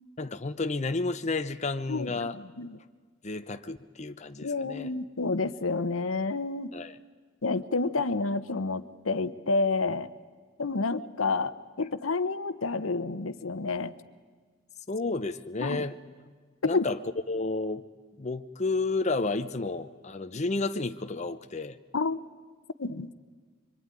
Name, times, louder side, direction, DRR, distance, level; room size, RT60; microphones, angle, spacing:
voice 1, 0.2-2.4 3.2-4.9 6.7-7.0 14.9-16.0 16.6-17.0 17.3-17.8 18.2-21.8, left 3 dB, 35° left, 9 dB, 0.8 m, -31 dB
voice 2, 1.9-2.8 4.4-6.7 7.4-10.1 10.6-13.9 15.6-15.9 16.7-16.9 21.9-22.2 22.8-23.1, left 3 dB, 85° left, 13 dB, 1.0 m, -29 dB
24.5 x 24.5 x 9.8 m, 1.5 s
head